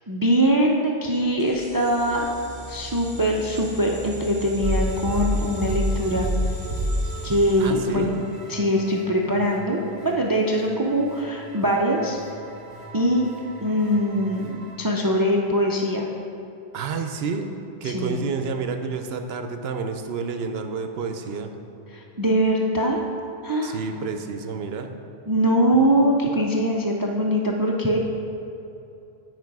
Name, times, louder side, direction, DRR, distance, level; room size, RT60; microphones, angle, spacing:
voice 1, 0.1-2.3 2.7-6.3 7.2-8.2 8.5-12.2 12.9-13.3 13.6-16.1 17.8-18.2 21.9-23.0 23.4-23.8 25.3-28.0, equal, 35° right, 0 dB, 0.3 m, -22 dB
sound 1, 1.4-8.5, right 2 dB, 5° right, 1.2 m, -39 dB
sound 2, 4.6-14.8, equal, 50° right, 1.9 m, -31 dB
voice 2, 7.6-8.2 16.7-17.5 17.8-21.5 23.6-25.0 25.7-25.8, right 4 dB, 75° right, 6 dB, 0.8 m, -29 dB
9.6 x 5.0 x 4.7 m, 2.8 s
omnidirectional pair, 1.1 m